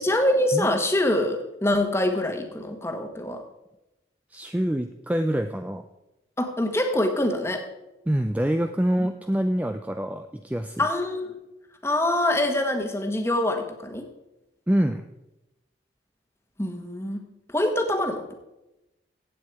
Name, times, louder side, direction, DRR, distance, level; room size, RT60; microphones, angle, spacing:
voice 1, 0.0-3.4 6.4-7.6 9.0-9.1 10.8-11.4 11.8-14.1 16.6-17.3 17.5-18.3, left 1 dB, 15° left, 5 dB, 1.3 m, -25 dB
voice 2, 4.3-5.8 8.1-10.9 14.7-15.1, equal, 10° right, 7 dB, 0.4 m, -25 dB
15.5 x 8.5 x 4.7 m, 0.94 s
head